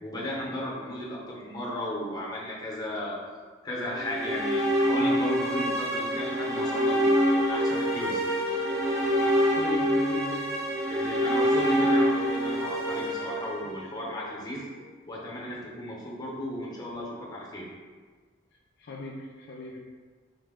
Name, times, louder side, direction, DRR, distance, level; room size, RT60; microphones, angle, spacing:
voice 1, 0.0-3.2 3.6-8.4 10.9-14.7 15.1-17.7, equal, 20° left, -4 dB, 0.7 m, -35 dB
sound 1, 3.9-14.1, equal, 15° right, 0.5 m, -26 dB
voice 2, 9.6-10.5 18.8-19.8, left 1 dB, 60° left, -1 dB, 0.3 m, -38 dB
3.8 x 2.1 x 3.5 m, 1.5 s
head